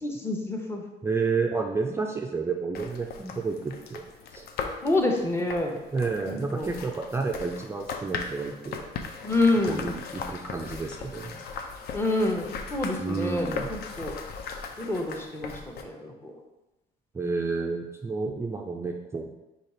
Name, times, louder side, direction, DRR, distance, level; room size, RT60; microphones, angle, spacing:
voice 1, 0.0-0.8 4.8-5.7 6.3-6.7 9.2-9.8 11.9-14.1 14.8-16.3, left 2 dB, 15° left, 2 dB, 0.7 m, -27 dB
voice 2, 1.0-4.0 4.3-4.5 5.9-8.8 9.7-11.4 13.0-13.7 17.1-19.3, right 4 dB, 15° right, 1 dB, 0.3 m, -30 dB
sound 1, 2.7-15.8, left 5 dB, 70° left, 0.5 m, -38 dB
4.9 x 2.4 x 4.2 m, 1.0 s
cardioid pair, 110°, 17 cm